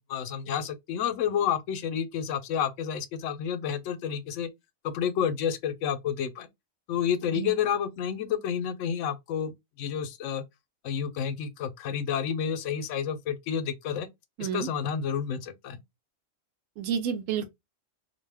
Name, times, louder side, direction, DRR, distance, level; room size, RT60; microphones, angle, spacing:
voice 1, 0.0-4.5 4.8-6.5 6.9-9.5 9.8-10.4 10.8-14.1 14.4-15.8, left 8 dB, 75° left, 0.9 m, -30 dB
voice 2, 14.4-14.7 16.8-17.5, right 8 dB, 90° right, 1.0 m, -30 dB
2.5 x 2.2 x 3.3 m
omnidirectional pair, 1.3 m